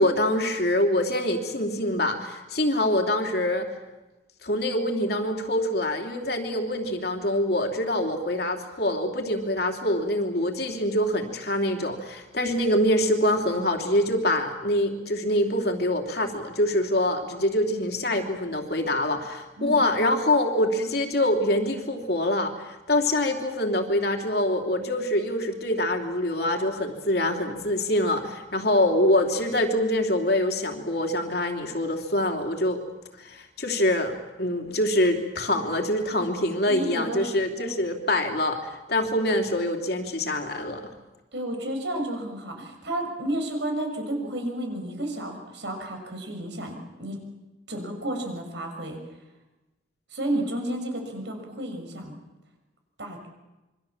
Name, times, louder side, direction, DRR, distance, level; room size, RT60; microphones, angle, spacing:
voice 1, 0.0-3.7 4.4-32.8 33.2-40.8, left 1 dB, 55° left, 4 dB, 3.1 m, -25 dB
voice 2, 36.7-37.7 41.3-47.2 47.7-49.0 50.1-52.1 53.0-53.3, right 1 dB, 65° right, 4 dB, 6.2 m, -32 dB
27.0 x 24.5 x 7.3 m, 1.1 s
head